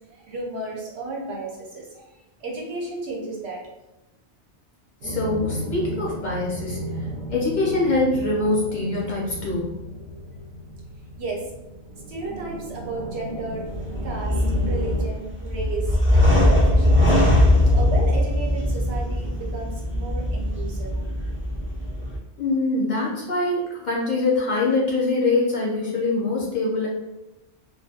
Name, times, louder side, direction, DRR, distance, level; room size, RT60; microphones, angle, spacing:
voice 1, 0.1-2.1 2.4-3.6 11.2-11.5 12.1-13.6 14.0-17.0 17.7-21.0, right 2 dB, 70° right, -2 dB, 0.9 m, -33 dB
voice 2, 5.0-6.8 7.3-9.8 17.2-17.3 22.4-26.9, left 2 dB, 50° left, -4 dB, 0.6 m, -24 dB
sound 1, 5.0-15.0, right 1 dB, 55° right, 0.7 m, -34 dB
sound 2, 13.7-22.2, left 1 dB, 15° right, 0.6 m, -20 dB
2.3 x 2.2 x 2.7 m, 0.95 s
omnidirectional pair, 1.1 m